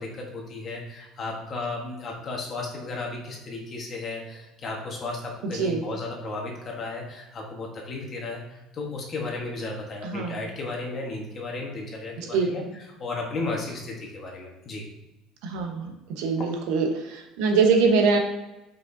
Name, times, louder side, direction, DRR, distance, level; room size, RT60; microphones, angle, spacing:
voice 1, 0.0-14.8, left 3 dB, 30° left, -1 dB, 1.4 m, -34 dB
voice 2, 10.0-10.4 12.2-12.5 15.4-18.2, right 4 dB, 85° right, 3 dB, 1.1 m, -23 dB
7.2 x 5.2 x 2.7 m, 0.98 s
cardioid pair, 170°, 0 cm